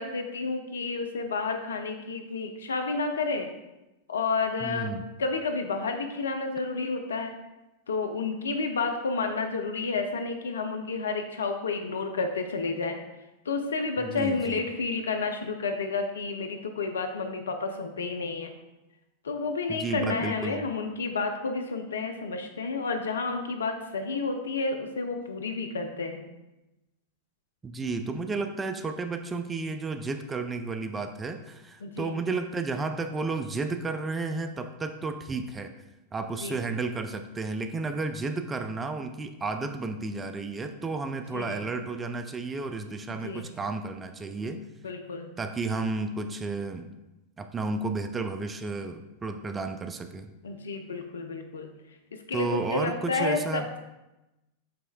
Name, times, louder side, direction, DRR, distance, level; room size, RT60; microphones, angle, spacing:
voice 1, 0.0-3.5 4.1-4.9 5.2-7.3 7.9-13.0 13.5-18.5 19.2-26.3 31.8-32.2 36.4-36.6 41.3-41.6 43.1-43.5 44.8-45.3 50.4-51.7 52.3-53.8, left 4 dB, 70° left, 5 dB, 0.4 m, -30 dB
voice 2, 4.6-5.0 14.0-14.6 19.7-20.6 27.6-35.7 36.1-44.6 45.4-46.9 47.4-50.3 52.3-53.6, right 3 dB, 15° right, 7 dB, 0.3 m, -32 dB
7.5 x 3.1 x 2.2 m, 0.99 s
figure-of-eight pair, 90°, 0 cm